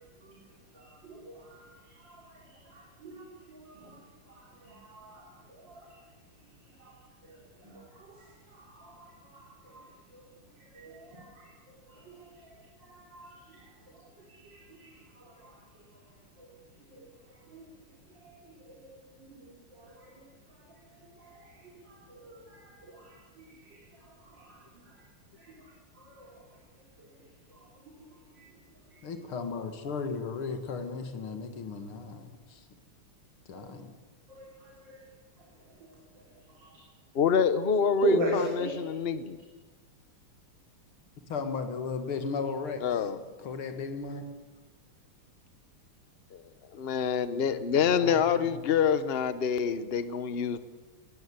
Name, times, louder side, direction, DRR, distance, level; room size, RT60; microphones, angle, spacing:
voice 1, 0.7-1.7 2.0-4.0 4.3-5.9 6.8-6.9 7.3-8.2 8.5-9.9 10.1-10.2 10.7-11.5 11.9-12.5 12.8-13.7 14.4-15.5 16.4-16.5 16.9-17.0 17.5-17.6 18.2-18.9 19.2-20.1 21.2-23.8 24.3-24.8 25.4-25.6 26.0-26.3 27.5-27.6 28.0-28.1 28.4-28.5 33.5-33.6 34.3-35.0 36.6-36.8 38.0-38.7, right 2 dB, 55° right, -2 dB, 4.3 m, -40 dB
voice 2, 29.0-32.6 33.5-33.9 41.3-43.1 43.4-44.2 47.7-48.6, left 5 dB, 75° left, 7 dB, 2.8 m, -36 dB
voice 3, 37.1-39.4 42.8-43.2 46.3-46.4 46.7-50.6, left 7 dB, 45° left, 13 dB, 0.8 m, -26 dB
20.0 x 17.0 x 9.5 m, 1.3 s
omnidirectional pair, 2.4 m